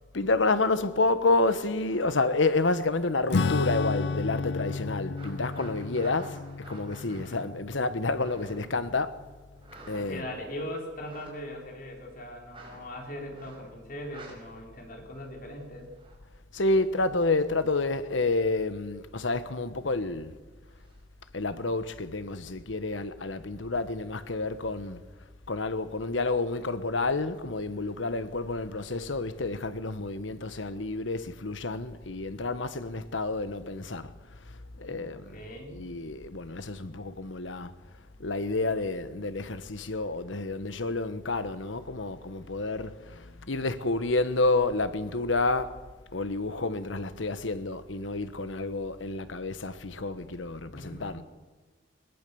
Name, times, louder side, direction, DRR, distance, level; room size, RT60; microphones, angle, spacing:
voice 1, 0.1-9.2 9.9-10.2 16.5-20.3 21.3-25.0 25.5-34.1 34.5-35.4 35.7-37.7 38.2-45.8 46.1-51.2, left 3 dB, 85° left, 1.2 m, -29 dB
sound 1, 1.6-4.1 4.5-8.8 9.6-10.4 10.9-11.3 12.5-12.8 13.3-13.7 14.0-14.3 15.1-16.2 20.7-21.0, right 2 dB, 25° right, 5.7 m, -51 dB
Acoustic guitar / Strum, 3.3-9.2, left 4 dB, 65° left, 0.6 m, -32 dB
voice 2, 7.1-7.5 9.9-15.9 34.7-35.9 50.7-51.2, equal, 45° left, 4.5 m, -40 dB
21.0 x 20.5 x 7.0 m
head